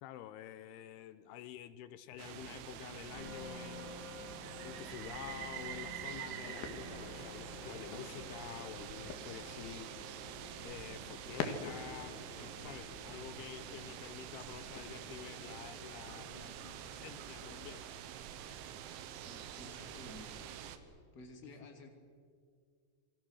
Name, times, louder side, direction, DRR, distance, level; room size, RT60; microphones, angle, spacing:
voice 1, 0.0-3.9 4.6-9.9 10.6-12.2 12.6-17.9 21.4-21.5, left 11 dB, 80° left, 13 dB, 2.4 m, -49 dB
sound 1, 2.2-20.8, right 9 dB, 90° right, 3.7 m, -47 dB
sound 2, 3.1-18.3 18.8-19.2, left 3 dB, 70° right, 7.6 m, -55 dB
sound 3, 6.4-17.8, left 5 dB, 60° left, 3.3 m, -49 dB
voice 2, 19.2-20.5 21.1-21.9, left 2 dB, 30° left, 4 dB, 2.2 m, -53 dB
28.0 x 24.5 x 6.5 m, 2.1 s
omnidirectional pair, 5.3 m